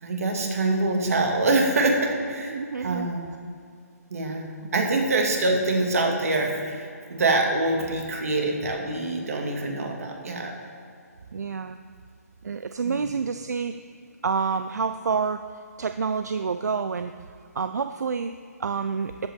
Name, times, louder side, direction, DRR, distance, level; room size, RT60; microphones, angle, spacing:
voice 1, 0.0-3.3 4.1-10.5 12.8-13.0, right 2 dB, 60° right, 2 dB, 2.1 m, -25 dB
voice 2, 2.5-3.1 4.6-4.7 11.3-11.8 12.4-13.8 14.2-15.5 15.8-17.1 17.5-19.3, right 5 dB, 80° right, 9 dB, 0.4 m, -28 dB
13.0 x 8.2 x 3.6 m, 2.4 s
hypercardioid pair, 160°, 9 cm